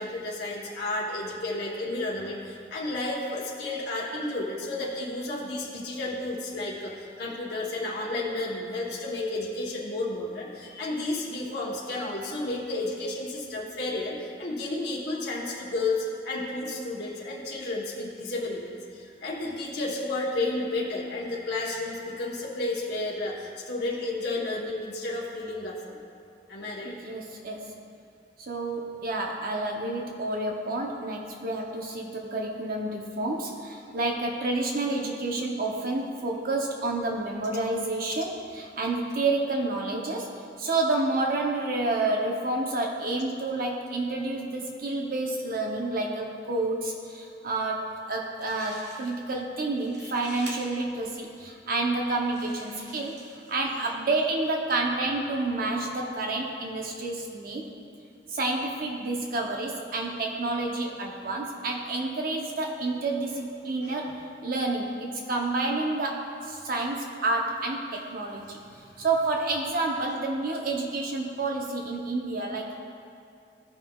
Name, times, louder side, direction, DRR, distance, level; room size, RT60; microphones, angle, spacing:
voice 1, 0.0-26.0 26.5-27.0 50.0-50.1 53.7-53.9 63.8-64.0 68.8-69.0, left 2 dB, 65° left, -4 dB, 0.9 m, -32 dB
voice 2, 26.8-27.7 28.4-40.3 40.6-57.7 58.3-68.6 69.0-72.8, right 2 dB, 55° right, 1 dB, 0.6 m, -29 dB
sound 1, 48.1-48.2 48.4-49.3 49.7-50.5 51.3-51.4 52.1-53.6, right 2 dB, 70° right, 1.4 m, -47 dB
15.0 x 5.5 x 2.3 m, 2.5 s
head